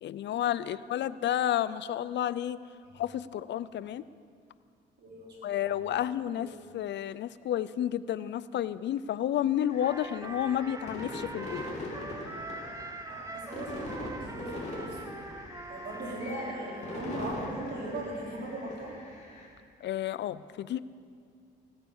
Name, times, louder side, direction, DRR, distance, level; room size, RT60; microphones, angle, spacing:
voice 1, 0.0-2.6 2.9-4.0 5.4-11.7 19.8-20.8, left 11 dB, 65° left, 16 dB, 0.5 m, -31 dB
voice 2, 5.0-5.4 5.6-5.9 6.3-6.5 13.1-15.0 15.6-19.0, right 1 dB, 60° right, -4 dB, 4.7 m, -39 dB
sound 1, 9.7-19.5, left 2 dB, 35° left, 3.5 m, -42 dB
Trumpet, 9.8-17.3, right 2 dB, 15° right, 0.8 m, -43 dB
18.0 x 9.1 x 7.2 m, 2.2 s
cardioid pair, 90°, 20 cm